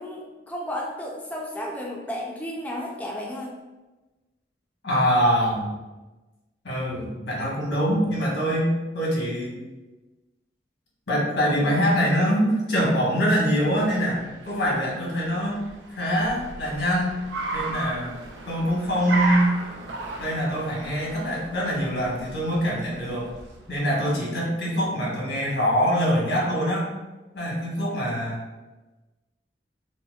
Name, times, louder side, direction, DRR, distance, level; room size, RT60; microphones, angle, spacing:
voice 1, 0.0-3.6, left 1 dB, 10° left, -2 dB, 0.3 m, -33 dB
voice 2, 4.8-5.7 6.6-9.5 11.1-15.6 15.9-17.2 17.5-18.1 18.5-19.6 20.2-23.3 23.7-26.9 27.3-28.4, equal, 80° left, -4 dB, 1.1 m, -24 dB
Car, 13.8-24.0, right 3 dB, 80° right, 0.5 m, -35 dB
4.2 x 2.1 x 2.2 m, 1.1 s
head